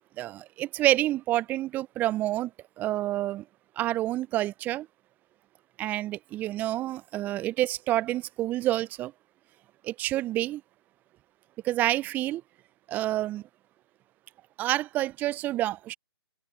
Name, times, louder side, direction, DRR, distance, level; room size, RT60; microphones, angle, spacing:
voice 1, 0.2-2.5 2.8-3.4 3.8-4.9 5.8-9.1 9.8-10.6 11.6-12.4 12.9-13.4 14.6-15.9, right 15 dB, 10° right, 0.6 m, -28 dB
figure-of-eight pair, 140°, 14 cm